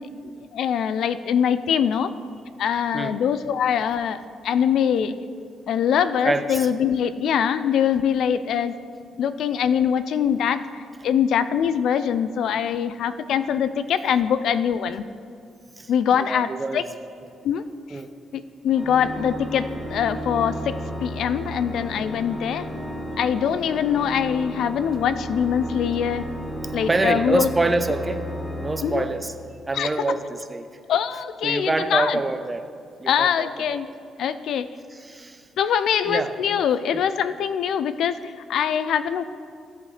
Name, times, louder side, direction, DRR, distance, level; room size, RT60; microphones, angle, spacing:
voice 1, 0.2-2.1 2.6-5.2 5.7-8.7 9.2-15.0 15.9-16.8 17.4-17.6 17.9-18.0 18.3-22.7 23.2-26.3 26.7-27.5 28.8-29.1 29.7-30.0 30.9-32.2 33.1-33.9 34.2-34.7 35.6-39.2, left 8 dB, 75° left, 13 dB, 0.4 m, -23 dB
voice 2, 6.2-6.7 15.8-16.8 17.9-18.1 26.9-28.2 28.6-29.3 29.7-30.7 31.4-32.7 33.0-33.5 34.9-35.4 36.1-36.3 36.9-37.0, right 2 dB, 25° right, 9 dB, 0.8 m, -26 dB
Organ, 18.7-29.6, equal, 30° left, 1.5 m, -33 dB
17.0 x 8.3 x 3.3 m, 2.3 s
cardioid pair, 70°, 0 cm